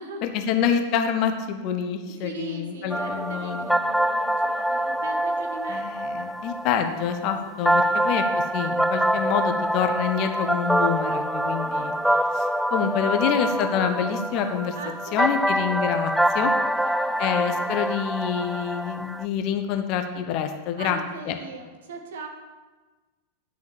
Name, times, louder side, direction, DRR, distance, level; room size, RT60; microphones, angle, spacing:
voice 1, 0.2-3.7 5.7-12.0 12.3-14.8 15.1-16.5 17.2-21.0 21.3-21.4, left 8 dB, 40° left, 6 dB, 1.1 m, -27 dB
voice 2, 2.2-6.0 7.6-8.3 11.5-12.1 14.7-15.7 16.6-17.8 20.8-22.3, right 3 dB, 60° right, 3 dB, 1.7 m, -40 dB
sound 1, 2.9-19.2, right 1 dB, ahead, 0.3 m, -25 dB
11.0 x 6.3 x 7.0 m, 1.3 s
figure-of-eight pair, 90°, 0 cm